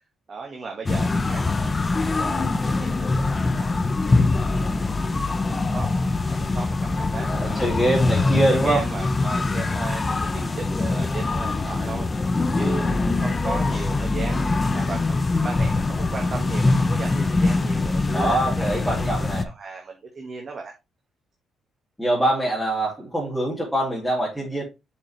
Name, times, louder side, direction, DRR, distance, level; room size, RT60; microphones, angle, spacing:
voice 1, 0.3-1.7 2.1-3.7 4.1-4.3 4.6-5.9 6.3-20.7, right 4 dB, 45° right, 1.7 m, -36 dB
sound 1, 0.9-19.5, left 3 dB, 25° left, 0.7 m, -23 dB
voice 2, 7.3-8.8 18.1-19.4 22.0-24.6, right 1 dB, ahead, 2.7 m, -24 dB
7.1 x 5.1 x 3.2 m
cardioid pair, 90°, 0 cm